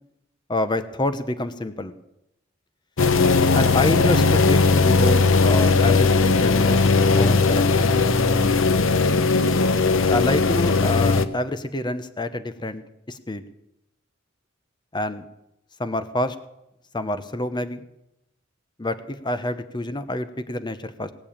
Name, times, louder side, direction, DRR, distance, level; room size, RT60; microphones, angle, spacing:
voice 1, 0.5-1.9 3.5-7.9 10.1-12.8 13.1-13.4 14.9-15.3 15.8-16.3 16.9-17.8 18.8-21.1, left 1 dB, 25° left, 11 dB, 0.9 m, -27 dB
sound 1, 3.0-11.3, left 4 dB, 80° left, 0.8 m, -18 dB
19.5 x 7.1 x 8.7 m, 0.85 s
head